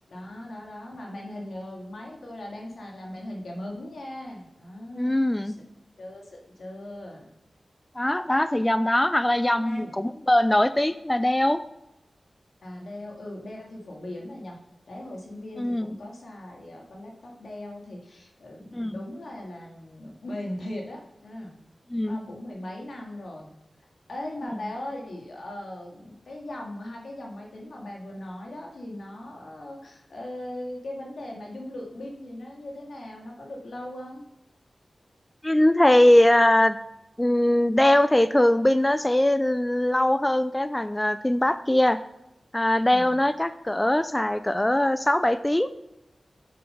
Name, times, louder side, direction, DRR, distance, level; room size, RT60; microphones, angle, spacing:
voice 1, 0.1-5.6 6.0-7.3 9.6-9.9 12.6-14.6 14.9-21.6 22.1-23.5 23.8-34.2 42.8-43.2, left 1 dB, 80° left, -1 dB, 2.1 m, -39 dB
voice 2, 5.0-5.5 8.0-11.6 15.6-16.0 18.7-18.9 21.9-22.2 35.4-36.8 37.2-42.0 42.5-45.7, left 1 dB, 15° left, 12 dB, 0.4 m, -21 dB
7.6 x 7.0 x 5.5 m, 0.91 s
wide cardioid pair, 65°, 0 cm